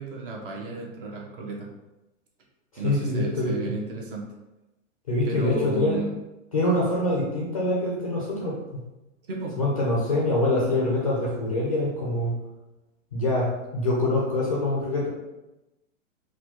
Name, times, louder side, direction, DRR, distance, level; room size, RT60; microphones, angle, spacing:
voice 1, 0.0-1.7 2.8-4.3 5.2-6.1 9.3-9.6, right 2 dB, 45° right, 0 dB, 0.8 m, -33 dB
voice 2, 2.8-3.6 5.1-6.0 6.5-8.8 9.6-12.3 13.1-15.1, left 1 dB, 30° left, -4 dB, 0.4 m, -25 dB
4.1 x 2.3 x 2.9 m, 0.99 s
hypercardioid pair, 170°, 39 cm